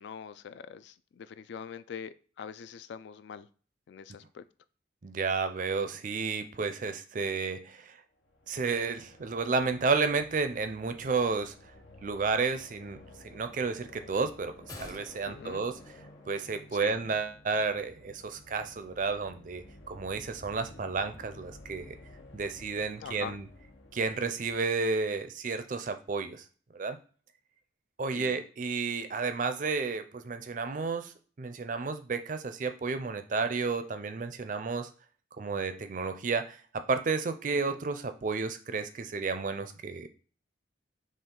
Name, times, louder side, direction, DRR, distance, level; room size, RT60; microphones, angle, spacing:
voice 1, 0.0-3.5 3.9-4.4 15.3-15.6 16.8-17.0 23.0-23.4 28.1-28.4 37.5-37.8, left 7 dB, 70° left, 0.3 m, -43 dB
voice 2, 5.0-8.0 8.5-11.5 12.0-15.8 16.3-21.9 22.3-23.5 23.9-26.4 26.7-27.0 28.0-34.9 35.4-40.1, right 4 dB, 45° right, 0.4 m, -32 dB
sound 1, 8.1-25.2, left 1 dB, 85° left, 1.0 m, -53 dB
sound 2, 14.7-17.0 17.3-17.4, left 1 dB, 20° left, 0.6 m, -50 dB
4.4 x 3.1 x 3.8 m
head